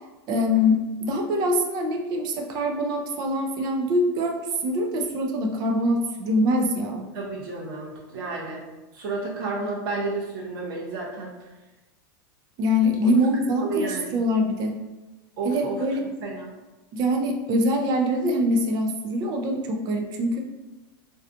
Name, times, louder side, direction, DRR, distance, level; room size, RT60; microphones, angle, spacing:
voice 1, 0.3-7.1 12.6-14.8 15.4-16.0 16.9-20.4, left 1 dB, 35° right, 3 dB, 0.4 m, -24 dB
voice 2, 7.1-8.6 8.9-11.5 13.0-13.1 13.6-14.2 15.4-15.9 16.2-16.5, right 3 dB, 75° right, -3 dB, 0.7 m, -31 dB
2.5 x 2.3 x 2.4 m, 1.1 s
supercardioid pair, 140°, 12 cm